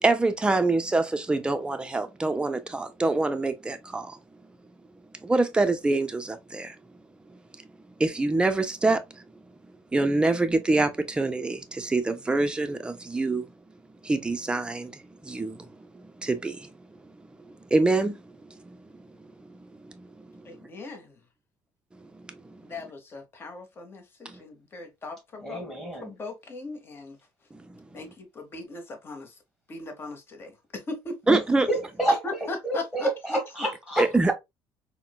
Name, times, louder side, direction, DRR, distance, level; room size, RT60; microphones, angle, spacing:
voice 1, 0.0-4.2 5.2-6.8 7.3-7.7 8.0-9.2 9.9-13.5 14.0-17.0 17.4-20.7 21.9-22.7 24.2-24.4 27.5-27.9 31.3-31.7 34.0-34.3, right 2 dB, 10° right, 0.6 m, -26 dB
voice 2, 20.4-21.2 22.6-25.7 26.0-27.2 27.9-29.4 29.7-31.2 32.2-33.4, left 3 dB, 30° left, 1.0 m, -39 dB
voice 3, 25.4-26.1 31.3-34.3, right 1 dB, 5° left, 1.4 m, -29 dB
4.2 x 2.1 x 2.2 m
cardioid pair, 105°, 8 cm